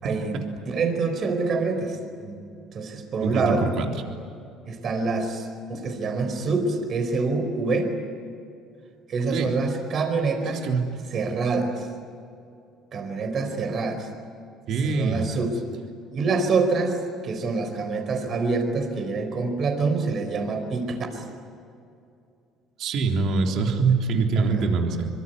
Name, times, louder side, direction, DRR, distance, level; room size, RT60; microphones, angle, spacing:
voice 1, 0.0-2.4 2.7-3.7 4.7-7.9 9.1-10.7 11.1-11.9 12.9-14.1 14.7-15.6 16.1-21.2 24.4-24.7, right 4 dB, 45° right, 6 dB, 4.8 m, -26 dB
voice 2, 3.2-3.9 9.3-9.5 10.6-10.8 14.7-15.3 22.8-25.1, right 4 dB, 65° right, 3 dB, 3.6 m, -24 dB
24.5 x 23.5 x 9.6 m, 2.5 s
cardioid pair, 110°, 0 cm